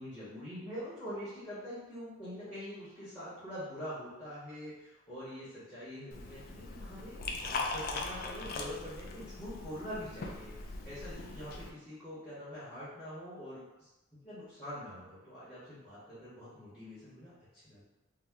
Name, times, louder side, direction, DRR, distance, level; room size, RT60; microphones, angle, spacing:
voice 1, 0.0-13.9 14.2-17.8, equal, 15° left, -13 dB, 0.9 m, -44 dB
Liquid, 6.1-11.7, left 3 dB, 45° left, 0.3 m, -40 dB
2.8 x 2.0 x 3.5 m, 1.0 s
head